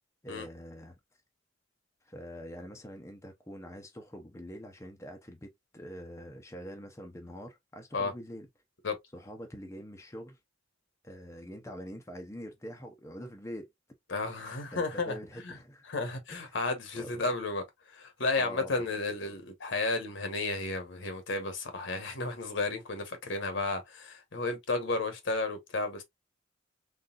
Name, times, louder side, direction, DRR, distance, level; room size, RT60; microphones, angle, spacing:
voice 1, 0.2-1.0 2.0-8.5 9.1-10.4 11.0-13.7 14.3-15.9 16.3-16.6 17.0-17.3 18.3-18.9 19.2-19.3, equal, 15° left, 0.7 m, -45 dB
voice 2, 14.1-15.2 15.4-15.5 15.9-26.0, left 3 dB, 65° left, 1.3 m, -33 dB
3.9 x 3.3 x 2.5 m
head